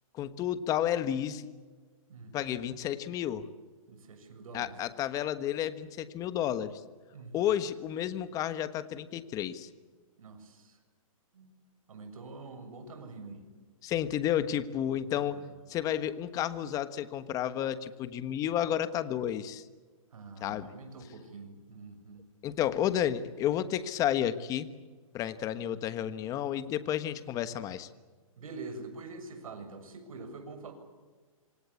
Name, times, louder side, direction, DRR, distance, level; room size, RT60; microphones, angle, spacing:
voice 1, 0.1-1.5 2.3-3.5 4.5-6.8 7.3-9.7 13.8-15.4 15.7-19.6 20.4-20.7 22.4-24.7 25.1-27.9, left 10 dB, 20° left, 13 dB, 1.3 m, -31 dB
voice 2, 3.9-4.8 7.1-7.4 10.2-10.8 11.3-11.5 11.9-13.4 15.1-15.5 20.1-22.3 28.4-30.7, right 3 dB, 75° right, 7 dB, 7.0 m, -45 dB
26.5 x 25.0 x 8.5 m, 1.4 s
hypercardioid pair, 155°, 18 cm